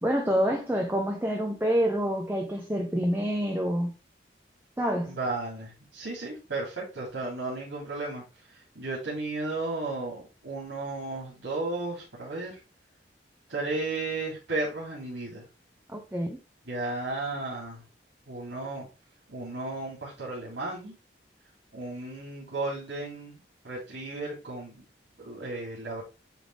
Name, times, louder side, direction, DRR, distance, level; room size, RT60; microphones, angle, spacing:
voice 1, 0.0-3.9 4.8-5.2 15.9-16.4, equal, 10° right, 0.7 m, -27 dB
voice 2, 5.1-12.6 13.5-15.5 16.6-17.8 18.3-18.9 19.3-21.0 21.7-23.4 23.6-24.8 25.2-26.0, right 2 dB, 90° right, 3.0 m, -34 dB
9.2 x 3.5 x 3.3 m
head